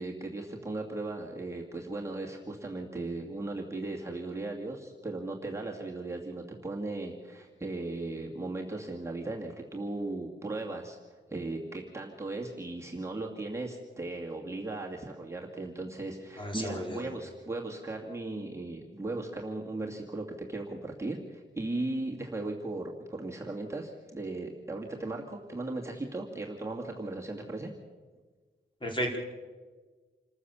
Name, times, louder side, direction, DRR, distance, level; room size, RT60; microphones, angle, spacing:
voice 1, 0.0-11.0 11.3-27.7, right 2 dB, 15° right, -2 dB, 2.4 m, -37 dB
voice 2, 16.4-17.1 28.8-29.2, equal, 25° left, 1 dB, 4.7 m, -33 dB
27.5 x 14.5 x 7.2 m, 1.4 s
wide cardioid pair, 100°, 19 cm